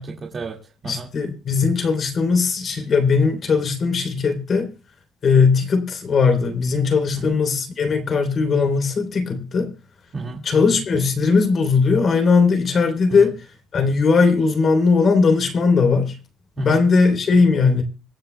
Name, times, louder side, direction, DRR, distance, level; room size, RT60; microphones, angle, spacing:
voice 1, 0.0-1.1 7.2-7.4 10.1-10.4 13.1-13.3 16.6-16.8, right 4 dB, 30° right, 2.0 m, -32 dB
voice 2, 0.8-4.7 5.2-9.7 10.4-13.3 13.7-16.2 16.6-17.8, left 4 dB, 40° left, 3.2 m, -18 dB
25.5 x 10.0 x 2.2 m
cardioid pair, 175°, 0 cm